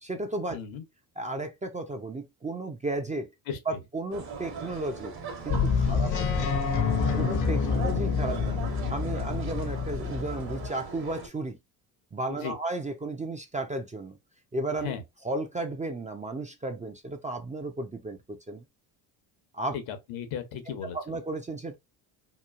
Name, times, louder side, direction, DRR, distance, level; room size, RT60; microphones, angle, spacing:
voice 1, 0.0-0.6 1.2-3.3 3.7-5.1 5.4-6.6 7.1-8.6 8.9-11.6 12.1-14.2 14.5-14.9 15.2-18.6 19.5-19.7 20.9-21.7, right 2 dB, 15° right, 0.5 m, -34 dB
voice 2, 0.5-0.8 3.5-3.6 5.8-6.0 12.3-12.6 14.8-15.0 19.7-21.0, left 8 dB, 70° left, 1.0 m, -36 dB
sound 1, 4.1-11.3, right 5 dB, 50° right, 1.1 m, -40 dB
sound 2, 5.5-10.7, left 5 dB, 40° left, 0.7 m, -27 dB
3.0 x 2.3 x 2.3 m
hypercardioid pair, 65°, 49 cm